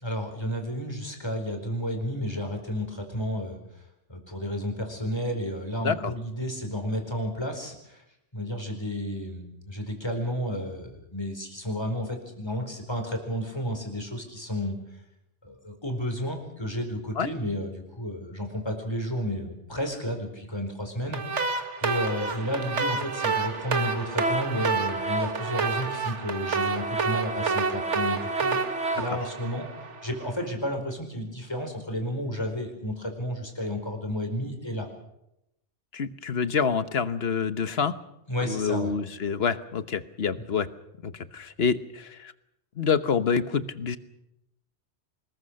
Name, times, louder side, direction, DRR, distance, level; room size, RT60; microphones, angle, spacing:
voice 1, 0.0-3.8 4.1-8.0 8.3-14.8 15.4-28.6 28.9-29.6 30.0-34.9 38.3-38.9, equal, 20° left, 4 dB, 4.6 m, -32 dB
voice 2, 5.8-6.1 17.2-17.3 29.1-29.2 35.9-37.9 38.4-40.7 41.0-42.3 42.8-44.0, left 6 dB, 60° left, 12 dB, 1.3 m, -27 dB
sound 1, 21.1-30.2, right 4 dB, 85° right, 1.9 m, -28 dB
25.5 x 21.0 x 6.5 m, 0.86 s
omnidirectional pair, 1.2 m